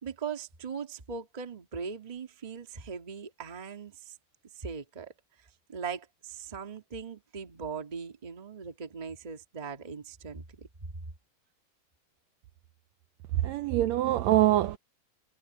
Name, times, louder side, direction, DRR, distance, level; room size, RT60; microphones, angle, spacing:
voice 1, 0.0-4.2 4.5-5.1 5.4-10.7, right 6 dB, 25° right, 0.8 m, -40 dB
voice 2, 13.3-14.8, right 14 dB, 80° right, 1.6 m, -24 dB
omnidirectional pair, 3.7 m